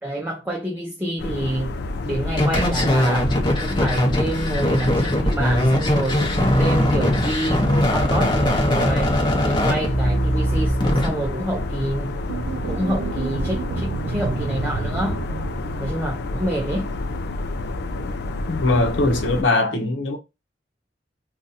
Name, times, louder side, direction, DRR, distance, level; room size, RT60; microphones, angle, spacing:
voice 1, 0.0-1.8 2.0-3.3 3.6-9.2 9.4-12.2 12.7-15.2 15.8-16.9, right 1 dB, 10° right, 0.6 m, -27 dB
sound 1, 1.2-19.4, left 2 dB, 60° left, 0.4 m, -29 dB
sound 2, 2.4-11.1, equal, 25° left, 0.8 m, -20 dB
sound 3, 12.3-16.6, right 5 dB, 60° right, 0.3 m, -31 dB
voice 2, 18.5-20.2, left 2 dB, 80° left, 0.9 m, -21 dB
2.7 x 2.4 x 3.9 m
head